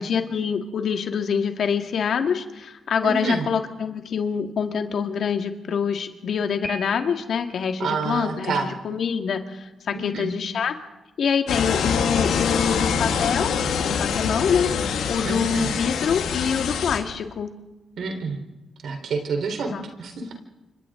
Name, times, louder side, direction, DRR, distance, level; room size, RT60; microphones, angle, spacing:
voice 1, 0.0-10.7 11.2-13.5 13.8-17.5 19.7-19.9 20.2-20.3, left 6 dB, 70° left, 6 dB, 2.0 m, -25 dB
voice 2, 3.0-3.4 7.8-8.7 9.9-10.4 15.2-15.7 18.0-18.4 18.8-20.3, right 4 dB, 75° right, 4 dB, 4.0 m, -28 dB
Piano, 6.6-7.6, right 2 dB, 10° right, 2.5 m, -38 dB
sound 1, 11.5-17.0, left 6 dB, 85° left, 2.3 m, -25 dB
29.0 x 26.0 x 3.8 m, 1.0 s
cardioid pair, 65°, 0 cm